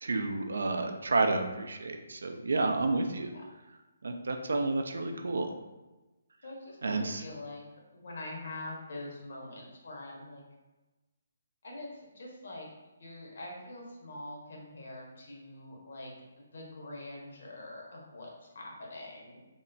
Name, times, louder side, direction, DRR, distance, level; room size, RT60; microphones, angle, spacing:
voice 1, 0.0-3.3 4.0-5.5 6.8-7.2, right 3 dB, 70° right, 5 dB, 0.3 m, -30 dB
voice 2, 6.4-7.6 7.9-10.4 11.6-12.7 13.0-19.4, left 2 dB, 60° left, -2 dB, 0.8 m, -44 dB
3.5 x 2.0 x 2.6 m, 1.1 s
figure-of-eight pair, 140°, 0 cm